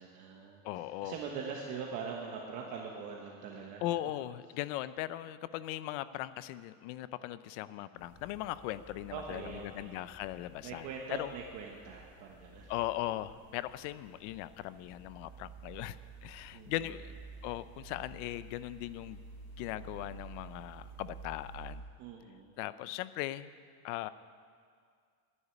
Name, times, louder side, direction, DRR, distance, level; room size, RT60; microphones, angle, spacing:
voice 1, 0.0-0.6 1.0-3.8 9.1-10.0 10.6-12.7 16.5-16.9 22.0-22.5, right 5 dB, 40° right, 0 dB, 1.3 m, -42 dB
voice 2, 0.6-1.2 3.8-10.9 11.2-11.3 12.7-17.1 17.4-19.2 19.6-21.8 22.6-23.5 23.8-24.1, left 14 dB, 55° left, 15 dB, 0.6 m, -39 dB
sound 1, 8.0-21.7, right 3 dB, 80° left, 5.0 m, -52 dB
11.0 x 10.0 x 9.8 m, 2.1 s
cardioid pair, 180°, 43 cm